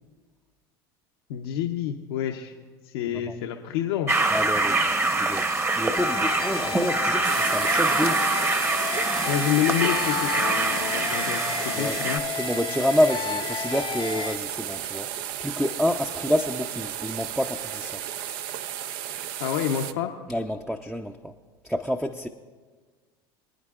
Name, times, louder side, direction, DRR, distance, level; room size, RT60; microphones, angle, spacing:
voice 1, 1.3-2.5 2.8-4.2 9.3-12.2 19.4-20.1, left 10 dB, 75° left, 3 dB, 0.8 m, -28 dB
sound 1, 4.1-12.2, right 2 dB, 20° right, 1.0 m, -25 dB
voice 2, 4.3-4.8 5.1-8.3 11.7-12.0 12.4-15.1 15.4-18.0 20.3-21.3 21.6-22.3, equal, ahead, 4 dB, 0.6 m, -28 dB
sound 2, 6.0-14.4, left 9 dB, 40° left, 0.7 m, -32 dB
sound 3, 7.2-19.9, right 11 dB, 65° right, 0.6 m, -33 dB
24.5 x 9.4 x 2.4 m, 1.5 s
hypercardioid pair, 85°, 13 cm